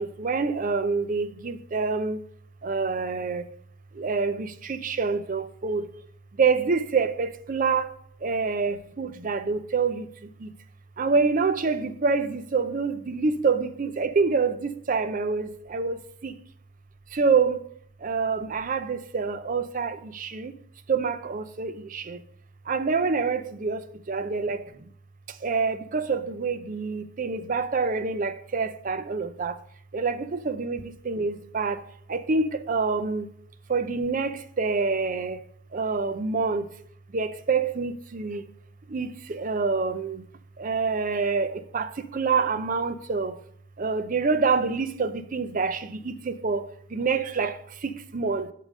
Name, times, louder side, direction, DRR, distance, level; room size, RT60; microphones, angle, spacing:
voice 1, 0.0-2.2 2.6-3.4 4.0-5.8 6.4-7.8 8.2-10.0 11.0-16.0 16.2-16.3 17.2-17.6 18.0-20.5 20.9-22.2 22.7-23.8 24.1-24.6 25.4-29.5 29.9-30.8 31.1-31.8 32.1-33.3 33.7-34.3 34.6-35.4 35.7-36.7 37.1-38.4 38.9-40.2 40.6-41.5 41.7-41.9 42.1-43.3 43.8-46.6 46.9-47.5 47.8-48.4, right 4 dB, 40° right, 0.5 m, -26 dB
10.5 x 3.8 x 5.3 m
head